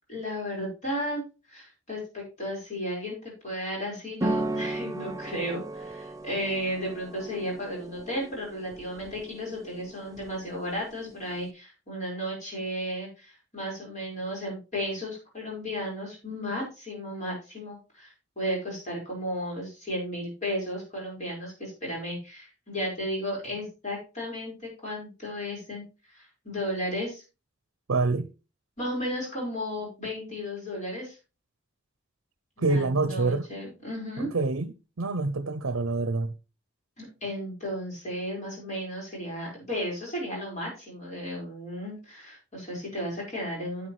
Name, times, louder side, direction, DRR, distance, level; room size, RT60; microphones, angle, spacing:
voice 1, 0.1-3.2 3.4-24.6 24.8-27.2 28.8-31.2 32.6-34.3 37.0-43.9, equal, 35° left, 5.1 m, -34 dB
sound 1, 4.2-11.5, right 2 dB, 15° right, 0.5 m, -36 dB
voice 2, 27.9-28.3 32.6-33.5 34.2-36.3, right 3 dB, 80° right, 0.7 m, -26 dB
9.6 x 8.1 x 3.2 m
head